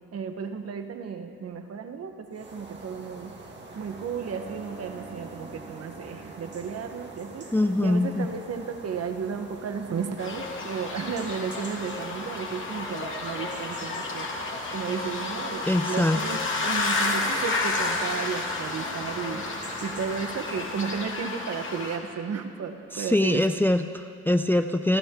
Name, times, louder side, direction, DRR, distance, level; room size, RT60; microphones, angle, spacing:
voice 1, 0.1-3.4 3.7-7.5 7.8-14.3 14.7-19.4 19.8-23.4, right 6 dB, 55° right, 7 dB, 1.3 m, -33 dB
sound 1, 2.3-21.2, right 3 dB, 35° right, 2.4 m, -44 dB
Bowed string instrument, 3.7-10.7, right 2 dB, 80° right, 3.0 m, -50 dB
voice 2, 7.5-8.3 15.7-16.2 22.9-25.0, left 1 dB, 5° left, 8 dB, 0.5 m, -23 dB
sound 2, 10.2-22.0, left 3 dB, 40° left, 2.6 m, -31 dB
29.0 x 12.0 x 3.8 m, 2.4 s
cardioid pair, 90°, 30 cm